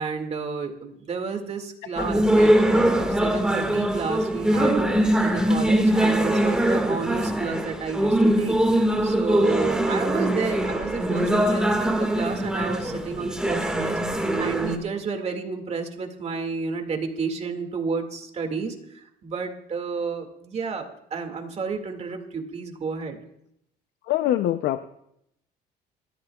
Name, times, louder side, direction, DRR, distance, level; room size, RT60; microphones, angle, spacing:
voice 1, 0.0-8.6 9.0-23.2, right 5 dB, 40° right, 5 dB, 2.0 m, -31 dB
sound 1, 2.0-14.8, right 1 dB, 5° right, 1.7 m, -22 dB
voice 2, 24.1-24.9, left 12 dB, 75° left, 10 dB, 0.6 m, -24 dB
26.5 x 14.0 x 2.3 m, 0.76 s
cardioid pair, 110°, 17 cm